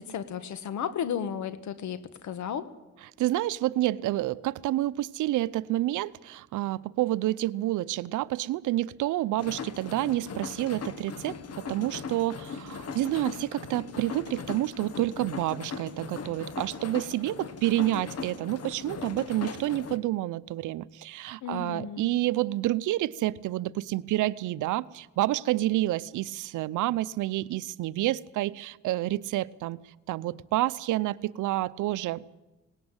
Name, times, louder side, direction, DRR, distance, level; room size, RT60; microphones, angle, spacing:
voice 1, 0.0-2.7 21.4-22.1, left 8 dB, 70° left, 13 dB, 1.6 m, -34 dB
voice 2, 3.2-29.8 30.1-32.2, right 15 dB, 80° right, 17 dB, 0.7 m, -29 dB
sound 1, 9.4-20.0, left 5 dB, 55° left, 1.6 m, -39 dB
18.5 x 18.5 x 8.9 m, 1.0 s
cardioid pair, 90°, 30 cm